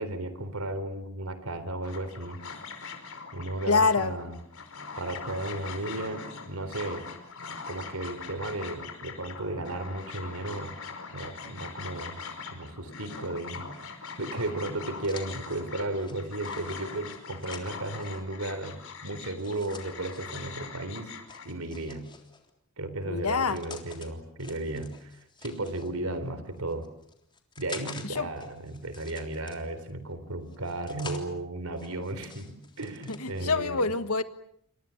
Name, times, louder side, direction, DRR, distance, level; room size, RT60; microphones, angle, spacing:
voice 1, 0.0-2.4 3.3-4.3 5.0-7.1 7.7-10.8 11.1-12.2 12.5-21.1 21.4-22.1 22.8-26.9 27.6-33.9, right 2 dB, 75° right, 12 dB, 3.7 m, -35 dB
sound 1, 1.8-21.5, left 5 dB, 65° left, 5.3 m, -42 dB
voice 2, 3.7-4.1 23.1-23.6 28.0-28.3 33.1-34.2, left 4 dB, 90° left, 11 dB, 1.6 m, -26 dB
sound 2, 14.1-18.2 19.4-20.5 21.3-22.5 23.2-24.1 24.4-25.9 26.6-28.1 28.4-29.9 30.5-31.3 31.7-33.4, left 4 dB, 20° left, 3.6 m, -48 dB
28.0 x 26.0 x 7.1 m, 0.70 s
head